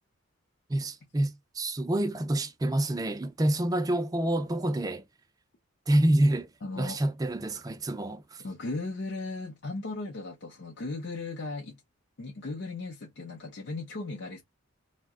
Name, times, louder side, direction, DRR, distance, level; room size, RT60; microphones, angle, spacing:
voice 1, 0.7-5.0 5.9-6.5 6.8-8.4, right 1 dB, 20° right, 0.3 m, -27 dB
voice 2, 6.6-7.0 8.4-11.8 12.2-14.4, left 3 dB, 55° left, 0.6 m, -36 dB
2.7 x 2.1 x 3.5 m
head